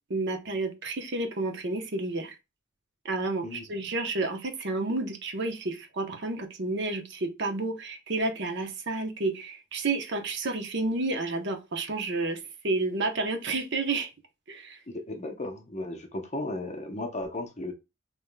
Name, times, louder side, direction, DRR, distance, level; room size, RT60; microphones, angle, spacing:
voice 1, 0.1-2.3 3.0-12.4 12.6-14.1 14.5-14.8, right 2 dB, 60° right, 0.8 m, -30 dB
voice 2, 3.4-3.8 14.9-17.7, left 2 dB, 35° left, 0.8 m, -35 dB
5.3 x 3.0 x 2.2 m
head